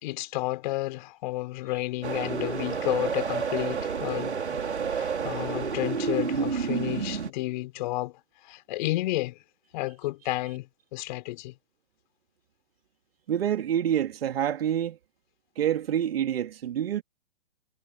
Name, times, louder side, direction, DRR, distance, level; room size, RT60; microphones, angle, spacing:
voice 1, 0.0-4.6 4.9-8.1 8.4-9.4 9.7-11.5, left 18 dB, 45° left, 4.1 m, -31 dB
sound 1, 2.0-7.3, right 6 dB, 80° right, 4.1 m, -30 dB
voice 2, 13.3-15.0 15.6-17.0, right 10 dB, 60° right, 2.8 m, -27 dB
figure-of-eight pair, 125°, 33 cm